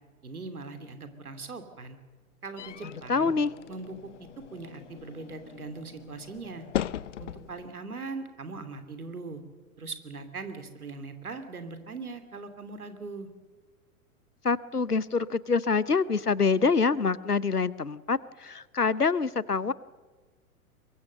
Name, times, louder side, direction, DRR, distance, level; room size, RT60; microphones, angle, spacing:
voice 1, 0.2-2.0 2.4-3.4 3.7-4.0 4.5-6.7 7.2-9.4 9.8-13.3, right 3 dB, 75° right, 8 dB, 2.9 m, -40 dB
sound 1, 2.6-7.7, left 11 dB, 55° left, 0.8 m, -39 dB
voice 2, 3.1-3.5 14.4-19.7, left 4 dB, 90° left, 20 dB, 0.9 m, -26 dB
23.0 x 23.0 x 6.8 m, 1.4 s
figure-of-eight pair, 100°, 44 cm